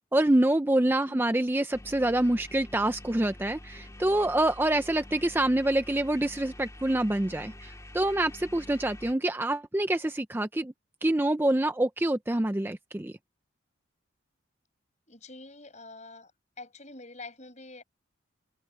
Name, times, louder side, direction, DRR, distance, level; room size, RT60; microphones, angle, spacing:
voice 1, 0.1-10.7 11.0-13.2, right 1 dB, 10° right, 0.4 m, -26 dB
sound 1, 1.7-9.1, left 1 dB, 15° left, 2.8 m, -47 dB
voice 2, 15.1-16.3 16.6-17.8, left 3 dB, 35° left, 7.6 m, -46 dB
head